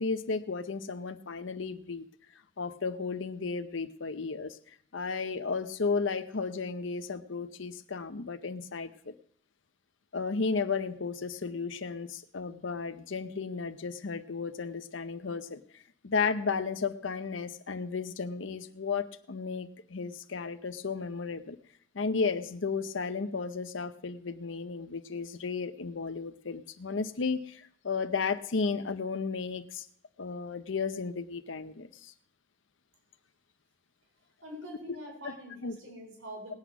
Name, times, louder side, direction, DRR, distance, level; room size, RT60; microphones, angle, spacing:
voice 1, 0.0-2.1 2.6-9.1 10.1-21.6 21.9-29.9 30.2-32.1 35.2-35.4 35.6-35.8, left 4 dB, 75° left, 0.7 m, -34 dB
voice 2, 34.4-36.5, equal, 90° right, 4.1 m, -44 dB
19.5 x 8.2 x 6.0 m
head